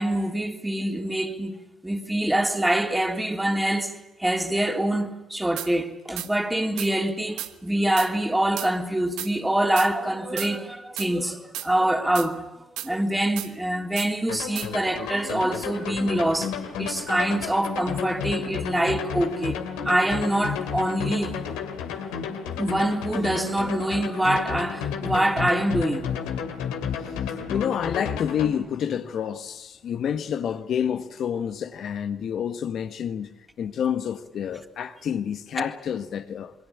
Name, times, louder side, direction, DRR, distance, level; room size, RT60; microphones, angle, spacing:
voice 1, 0.0-3.9 4.2-16.5 16.8-21.4 22.6-26.2 35.6-35.7, right 1 dB, 10° right, 3.5 m, -25 dB
sound 1, 5.6-5.7 6.2-6.3 6.8-6.9 7.4-7.5 8.0-8.1 8.6-8.7 9.2-9.3 9.8-9.9 10.4-10.5 11.0-11.1 11.5-11.7 12.1-12.3 12.8-12.9 13.4-13.5 14.0-14.1 14.5-14.7, right 13 dB, 80° right, 1.2 m, -33 dB
sound 2, 14.3-28.5, left 7 dB, 85° left, 2.5 m, -32 dB
voice 2, 27.0-33.3 33.6-36.5, left 8 dB, 65° left, 1.4 m, -29 dB
28.0 x 22.0 x 8.6 m
hypercardioid pair, 50°, 0 cm